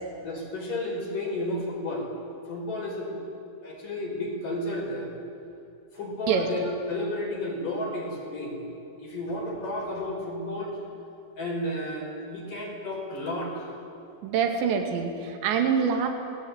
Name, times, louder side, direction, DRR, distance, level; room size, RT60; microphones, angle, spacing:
voice 1, 0.2-2.1 2.5-3.2 3.6-5.1 5.9-8.7 9.0-10.8 11.4-13.7, left 1 dB, 50° left, -1 dB, 7.2 m, -32 dB
voice 2, 14.2-16.1, right 7 dB, 85° right, 4 dB, 4.6 m, -25 dB
27.5 x 20.5 x 9.6 m, 2.9 s
omnidirectional pair, 4.9 m